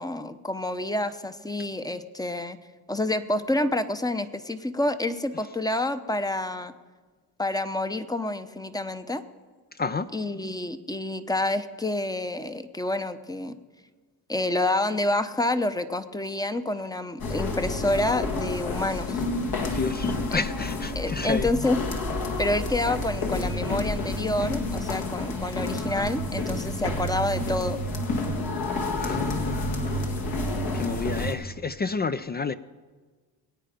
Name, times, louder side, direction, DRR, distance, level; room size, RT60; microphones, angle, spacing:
voice 1, 0.0-2.6 2.9-6.7 7.4-9.2 10.1-13.5 14.3-19.3 20.3-20.5 20.9-21.8 22.4-27.8, left 1 dB, 10° left, 0.8 m, -28 dB
sound 1, 17.2-31.3, left 2 dB, 60° left, 2.0 m, -29 dB
voice 2, 19.7-21.5 29.0-30.1 30.7-32.5, left 4 dB, 25° left, 0.4 m, -30 dB
22.0 x 9.0 x 5.2 m
cardioid pair, 85°, 41 cm